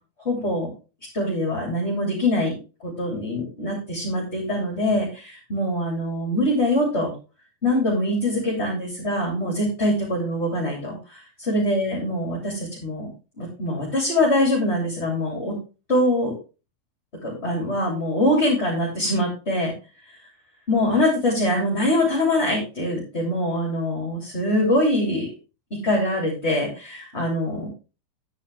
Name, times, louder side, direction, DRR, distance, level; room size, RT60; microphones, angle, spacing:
voice 1, 0.2-0.7 1.1-2.5 3.0-7.1 7.6-13.1 13.4-15.5 15.9-16.3 17.2-19.7 20.7-25.3 25.7-27.7, left 1 dB, 20° left, -3 dB, 2.9 m, -23 dB
10.0 x 9.7 x 3.5 m, 0.32 s
omnidirectional pair, 4.4 m